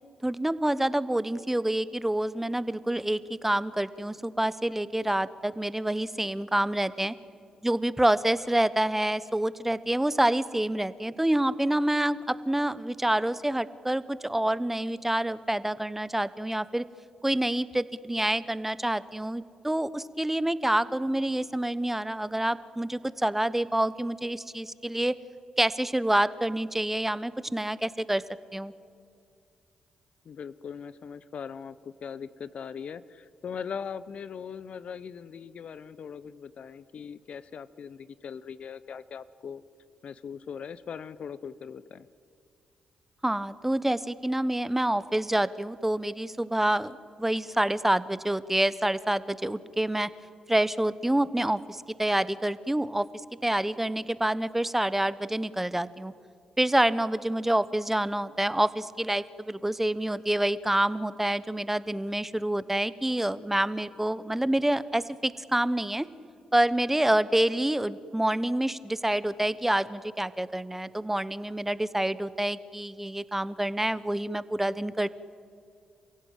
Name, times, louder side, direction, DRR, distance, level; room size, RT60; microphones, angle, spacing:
voice 1, 0.2-7.1 7.6-16.8 17.2-25.1 25.6-28.2 28.5-28.7 43.2-50.1 50.5-53.1 53.4-56.1 56.6-66.1 66.5-75.1, right 1 dB, 10° right, 16 dB, 1.1 m, -27 dB
voice 2, 30.2-39.6 40.0-42.1, left 7 dB, 60° left, 16 dB, 0.8 m, -40 dB
29.5 x 16.0 x 9.0 m, 2.4 s
hypercardioid pair, 45°, 2 cm